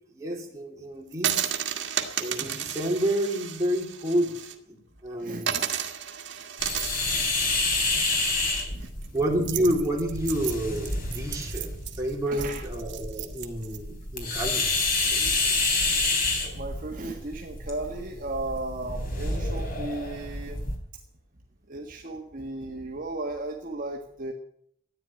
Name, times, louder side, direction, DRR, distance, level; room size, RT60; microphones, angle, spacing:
voice 1, 0.1-1.5 2.2-4.8 5.0-5.8 9.1-11.7 12.0-14.7 15.1-15.3, right 1 dB, 15° right, -2 dB, 3.5 m, -29 dB
sound 1, 1.1-4.5 4.9-5.0 5.4-13.8, right 9 dB, 75° right, 1.7 m, -33 dB
voice 2, 5.2-5.7 6.0-6.1 7.2-7.6 8.7-8.9 12.3-12.6 16.5-20.7 21.7-24.3, right 2 dB, 45° right, 0 dB, 1.6 m, -36 dB
sound 2, 6.6-20.8, left 3 dB, 50° left, 3.6 m, -29 dB
14.0 x 9.9 x 8.9 m, 0.69 s
head